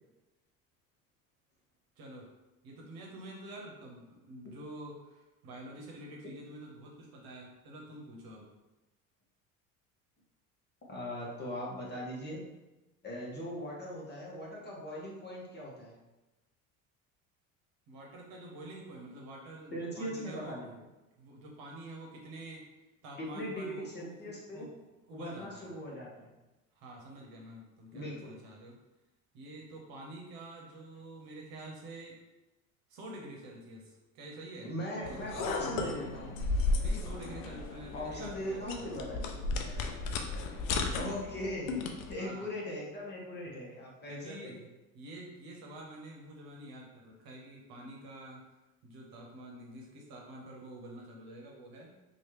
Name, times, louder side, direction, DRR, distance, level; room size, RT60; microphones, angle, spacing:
voice 1, 2.0-2.3 2.6-8.5 17.9-20.6 21.2-25.7 26.7-28.8 29.3-32.2 32.9-34.7 35.1-35.5 36.8-38.8 40.9-41.4 42.2-42.5 44.1-44.7 44.9-48.5 48.8-51.9, right 1 dB, 55° right, -1 dB, 1.0 m, -48 dB
voice 2, 10.9-12.4 13.0-16.0 19.7-20.8 23.2-24.7 25.1-26.3 27.9-28.3 34.6-36.4 37.9-39.4 40.9-44.6, equal, 25° left, -4 dB, 1.2 m, -40 dB
sound 1, 35.0-42.1, left 3 dB, 70° left, 0.6 m, -35 dB
3.1 x 2.6 x 3.1 m, 1.0 s
hypercardioid pair, 75°, 42 cm